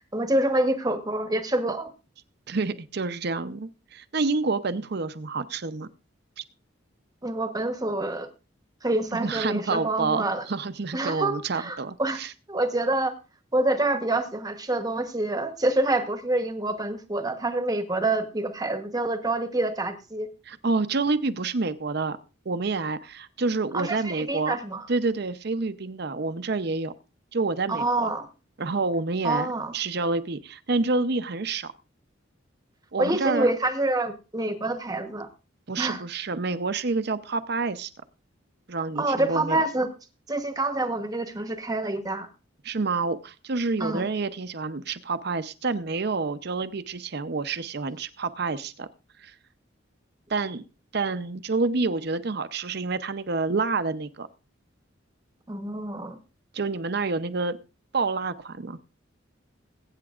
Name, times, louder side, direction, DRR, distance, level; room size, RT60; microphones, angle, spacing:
voice 1, 0.0-1.9 7.2-8.3 8.8-10.4 10.9-12.2 12.5-13.1 13.5-20.3 23.7-24.9 27.7-28.2 29.2-29.7 33.0-35.3 35.8-36.0 38.9-39.9 40.3-42.3 43.8-44.1 55.5-56.2, right 2 dB, 20° right, 8 dB, 1.0 m, -27 dB
voice 2, 2.5-5.9 6.4-6.5 9.1-12.3 20.5-22.2 22.5-24.6 24.9-26.9 27.3-28.1 28.6-29.5 29.7-31.7 32.9-33.5 35.7-37.9 38.7-39.6 42.6-48.9 49.2-49.3 50.3-50.6 50.9-54.3 56.5-57.6 57.9-58.8, right 3 dB, 55° right, 12 dB, 0.7 m, -28 dB
21.5 x 8.9 x 2.4 m, 0.31 s
head